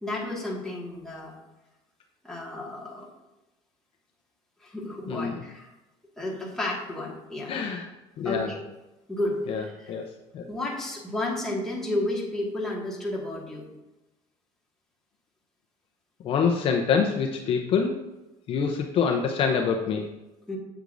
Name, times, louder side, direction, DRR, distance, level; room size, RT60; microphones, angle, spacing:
voice 1, 0.0-1.3 2.2-3.1 4.6-5.7 6.2-7.5 8.2-8.6 9.1-10.0 10.5-13.6 20.5-20.6, left 1 dB, 5° left, -4 dB, 1.8 m, -32 dB
voice 2, 5.1-5.4 7.5-7.9 8.2-8.5 9.5-10.0 10.3-10.4 16.2-18.0 18.5-20.0, left 6 dB, 45° left, 3 dB, 0.7 m, -25 dB
8.0 x 8.0 x 2.6 m, 1.0 s
cardioid pair, 145°, 13 cm